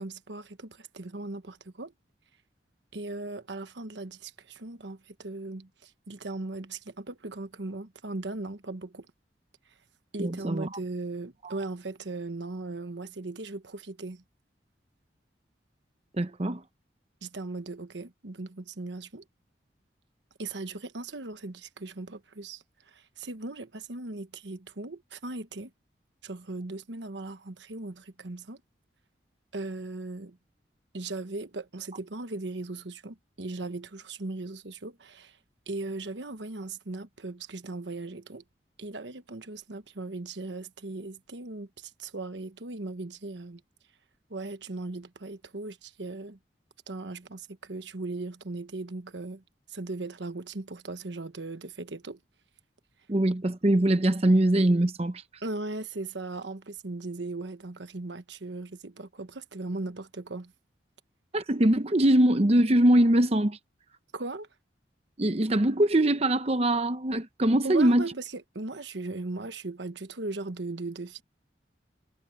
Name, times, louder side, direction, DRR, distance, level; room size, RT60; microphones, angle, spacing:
voice 1, 0.0-1.9 2.9-9.1 10.1-14.2 17.2-19.2 20.4-25.7 26.2-28.6 29.5-30.4 30.9-35.4 35.7-38.4 38.8-43.6 44.3-46.4 46.9-49.4 49.7-52.2 55.4-60.5 64.1-64.5 67.6-71.2, right 2 dB, 80° right, 1.2 m, -38 dB
voice 2, 10.2-10.7 11.4-11.6 16.1-16.6 53.1-55.2 61.3-63.6 65.2-68.1, right 1 dB, 35° right, 0.8 m, -23 dB
head